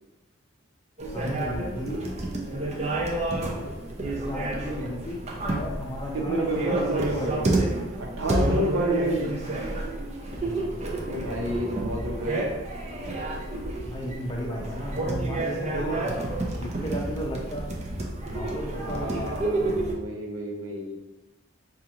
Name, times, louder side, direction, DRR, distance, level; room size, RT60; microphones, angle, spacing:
sound 1, 1.0-19.9, right 2 dB, 30° right, 0.5 m, -30 dB
voice 1, 1.1-2.9 3.3-3.8 4.3-7.5 10.4-10.8 13.8-17.8 18.3-19.4, equal, 20° left, -1 dB, 0.6 m, -35 dB
voice 2, 6.1-7.4 8.0-9.3 11.0-12.5 18.8-21.0, right 1 dB, 75° right, -1 dB, 0.8 m, -29 dB
5.0 x 2.4 x 2.9 m, 1.0 s
head